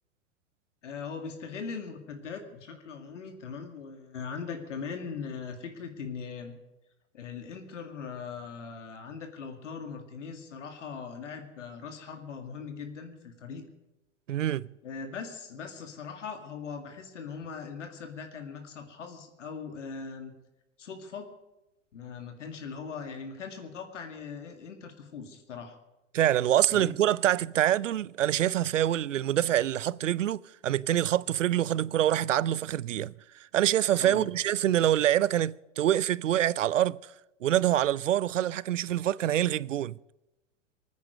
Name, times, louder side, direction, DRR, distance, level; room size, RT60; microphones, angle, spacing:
voice 1, 0.8-6.5 7.1-13.6 14.8-20.3 20.8-21.3 21.9-25.8 26.7-26.9 34.0-34.3, left 5 dB, 80° left, 2.2 m, -40 dB
voice 2, 14.3-14.7 26.1-33.1 33.5-37.0 37.4-40.0, right 12 dB, 90° right, 0.5 m, -25 dB
20.5 x 9.6 x 6.4 m
hypercardioid pair, 105°, 36 cm